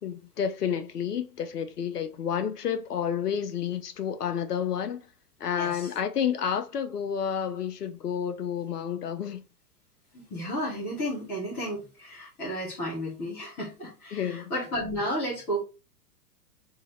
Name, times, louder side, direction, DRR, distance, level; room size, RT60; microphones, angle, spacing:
voice 1, 0.0-5.1 5.4-9.4 14.1-14.5, left 8 dB, 80° left, 0.8 m, -30 dB
voice 2, 5.5-5.9 10.1-15.6, equal, 5° left, 0.3 m, -33 dB
2.8 x 2.8 x 4.0 m
figure-of-eight pair, 110°, 47 cm